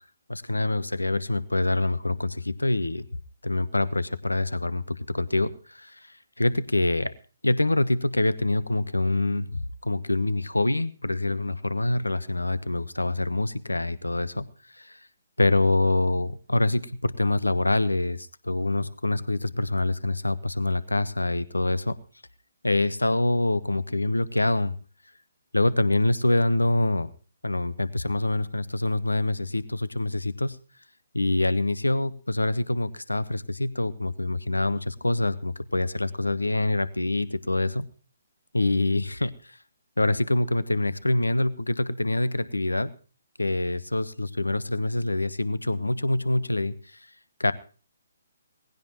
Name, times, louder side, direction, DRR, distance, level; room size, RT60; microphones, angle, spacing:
voice 1, 0.3-3.0 3.4-6.1 6.4-7.1 7.4-14.5 14.7-15.0 15.4-22.0 22.6-24.7 25.5-27.1 27.4-30.6 31.1-37.9 38.5-39.6 40.0-42.9 43.4-46.7 47.4-47.5, left 2 dB, 85° left, 17 dB, 0.9 m, -25 dB
19.0 x 16.0 x 3.0 m, 0.37 s
figure-of-eight pair, 135°, 0 cm